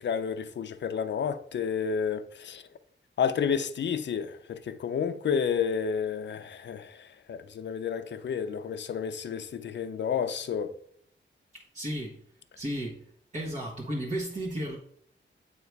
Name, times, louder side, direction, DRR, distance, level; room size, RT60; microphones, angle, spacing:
voice 1, 0.0-2.6 3.2-10.7, left 7 dB, 60° left, 0.5 m, -30 dB
voice 2, 11.5-12.2 12.6-13.0 13.3-14.8, right 1 dB, 35° right, 1.1 m, -34 dB
8.2 x 2.9 x 4.6 m
wide cardioid pair, 145°, 21 cm